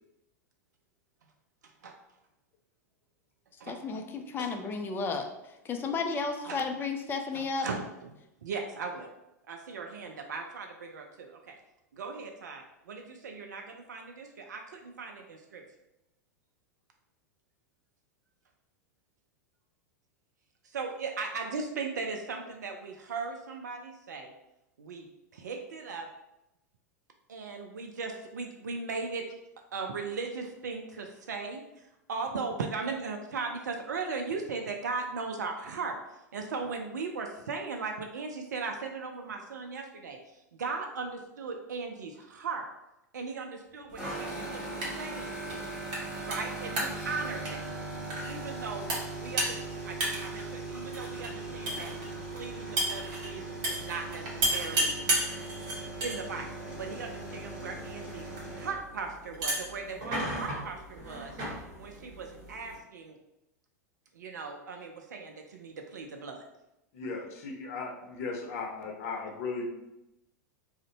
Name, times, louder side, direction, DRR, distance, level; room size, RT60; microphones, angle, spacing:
voice 1, 1.6-2.0 3.6-3.9 4.4-4.5 6.4-6.6 7.3-8.2 8.4-9.1 9.5-11.6 11.9-15.6 20.6-24.3 24.8-25.1 25.3-26.1 27.3-29.2 29.7-36.0 36.3-42.7 43.1-45.4 46.2-47.6 48.3-48.9 49.2-51.9 52.3-54.9 55.7-58.3 58.6-61.3 61.8-63.2 64.1-66.4, right 4 dB, 80° right, 3 dB, 0.4 m, -38 dB
voice 2, 3.7-5.3 5.7-7.7, left 4 dB, 25° left, 5 dB, 0.4 m, -32 dB
sound 1, 43.9-62.8, right 1 dB, 50° right, 1.0 m, -36 dB
sound 2, 44.0-58.7, right 2 dB, 10° right, 1.1 m, -40 dB
voice 3, 66.9-69.9, left 3 dB, 60° left, 1 dB, 0.7 m, -37 dB
2.5 x 2.1 x 3.9 m, 0.91 s
hypercardioid pair, 95°, 9 cm